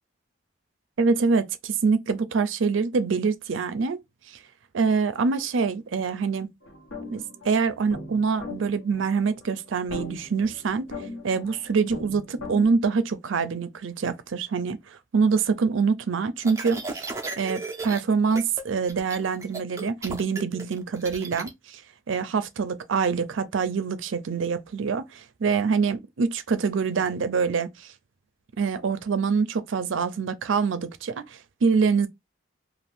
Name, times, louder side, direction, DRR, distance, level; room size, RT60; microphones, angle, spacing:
voice 1, 1.0-4.0 4.3-4.4 4.7-6.5 7.1-10.9 11.2-16.8 17.4-21.8 22.1-27.9 28.6-32.1, right 5 dB, 80° right, 0.5 m, -25 dB
sound 1, 6.6-12.7, left 2 dB, 75° left, 1.0 m, -40 dB
sound 2, 16.4-18.0 18.3-18.6 18.9-21.5, right 3 dB, 15° right, 0.5 m, -35 dB
2.6 x 2.4 x 3.4 m
head